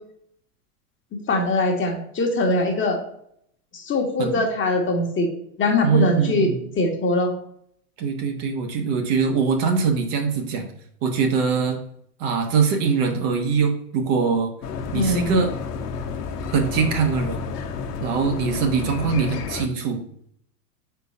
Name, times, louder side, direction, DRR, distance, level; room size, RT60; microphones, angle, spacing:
voice 1, 1.3-3.0 3.7-5.3 5.6-6.5 6.8-7.3 14.9-15.4, left 2 dB, 25° left, 2 dB, 1.4 m, -22 dB
voice 2, 5.8-6.6 8.0-10.7 11.0-11.8 12.2-14.5 14.9-15.6 16.5-17.4 18.0-20.0, right 5 dB, 50° right, 4 dB, 1.4 m, -22 dB
sound 1, 14.6-19.7, left 5 dB, 75° left, 1.0 m, -31 dB
4.7 x 3.9 x 5.4 m, 0.69 s
hypercardioid pair, 105°, 47 cm